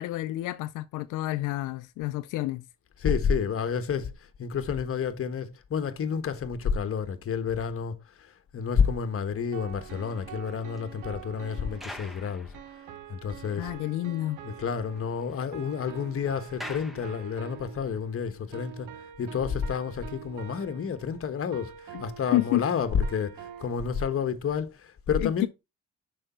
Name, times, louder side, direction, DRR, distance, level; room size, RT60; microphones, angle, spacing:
voice 1, 0.0-2.6 13.6-14.4 21.9-22.0 22.3-22.7 25.2-25.5, left 17 dB, 90° left, 0.5 m, -29 dB
voice 2, 3.0-4.1 4.4-12.5 13.1-13.7 14.4-18.9 19.2-25.5, left 6 dB, 45° left, 1.3 m, -30 dB
sound 1, 8.8-24.3, right 10 dB, 85° right, 1.0 m, -46 dB
sound 2, 9.7-13.4 13.7-13.8 14.1-14.2 14.5-17.8 18.5-18.7, left 1 dB, ahead, 1.3 m, -48 dB
6.5 x 5.2 x 4.3 m
cardioid pair, 90°, 30 cm